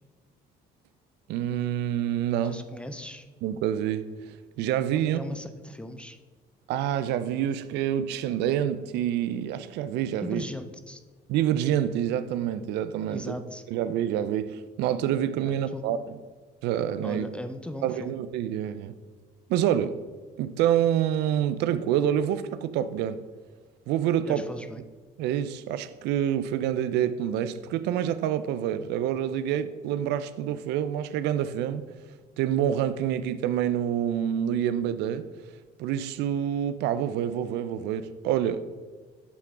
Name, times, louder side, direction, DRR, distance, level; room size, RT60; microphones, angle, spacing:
voice 1, 1.3-2.6 3.4-5.2 6.7-10.4 11.3-13.3 13.7-16.2 16.6-17.3 17.8-18.9 19.5-20.0 20.4-23.2 23.9-24.4 25.2-31.8 32.4-35.3 35.8-38.6, right 10 dB, 85° right, 0.4 m, -27 dB
voice 2, 2.4-3.3 4.9-6.2 10.2-11.0 13.1-13.6 15.4-15.8 17.0-18.1 24.3-24.8, left 1 dB, 5° left, 0.4 m, -38 dB
8.2 x 3.8 x 3.6 m
cardioid pair, 110°, 17 cm